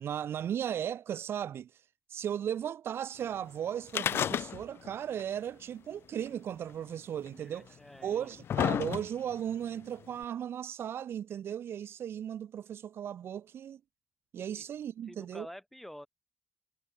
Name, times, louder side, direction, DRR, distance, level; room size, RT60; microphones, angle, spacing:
voice 1, 0.0-1.8 2.1-13.8 14.3-15.5, right 9 dB, 70° right, 0.6 m, -36 dB
sound 1, 3.9-4.9 5.2-5.3 6.3-6.4 7.3-7.4 8.0-9.4 10.2-10.3, left 9 dB, 70° left, 0.5 m, -31 dB
voice 2, 7.4-8.4 14.5-14.7 15.1-16.1, equal, 5° left, 5.3 m, -49 dB
cardioid pair, 75°, 4 cm